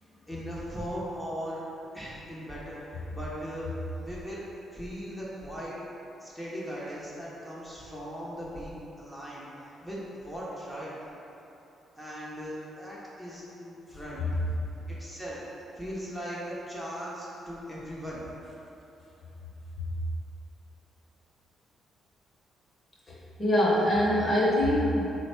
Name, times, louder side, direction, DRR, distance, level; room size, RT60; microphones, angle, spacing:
voice 1, 0.3-1.6 1.9-3.7 4.0-4.4 4.7-5.8 6.2-9.5 9.8-10.9 11.9-14.3 14.9-15.4 15.7-18.2, equal, 5° right, -8 dB, 0.7 m, -38 dB
voice 2, 23.1-25.1, left 1 dB, 30° left, -6 dB, 0.9 m, -24 dB
3.7 x 2.2 x 4.3 m, 3.0 s
cardioid pair, 90°, 0 cm